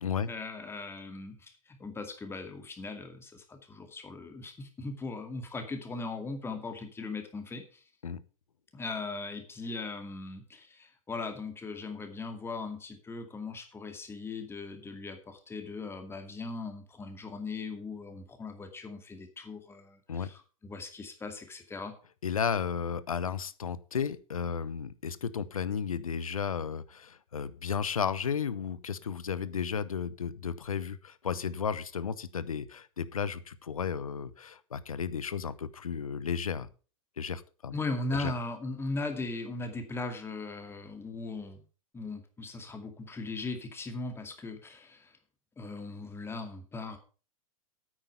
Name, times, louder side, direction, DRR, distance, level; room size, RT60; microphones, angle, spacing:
voice 1, 0.3-7.8 8.7-21.9 37.7-41.6 41.9-45.1 45.6-47.0, left 3 dB, 15° left, 6 dB, 2.2 m, -39 dB
voice 2, 22.2-36.7 37.2-37.7 38.1-38.3, left 7 dB, 75° left, 17 dB, 0.9 m, -33 dB
9.0 x 8.9 x 5.5 m, 0.36 s
figure-of-eight pair, 95°, 18 cm